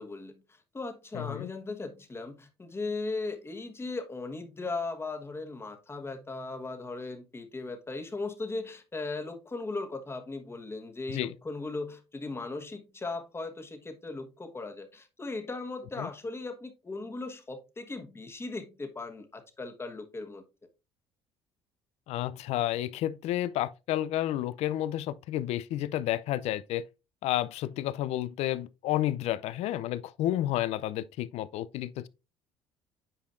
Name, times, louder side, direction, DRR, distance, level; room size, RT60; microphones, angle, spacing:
voice 1, 0.0-20.4, left 3 dB, 20° left, 1.3 m, -38 dB
voice 2, 1.1-1.5 11.1-11.3 16.0-16.1 22.1-26.8 27.2-32.1, left 13 dB, 65° left, 0.5 m, -31 dB
8.5 x 4.9 x 2.5 m
supercardioid pair, 80°, 12 cm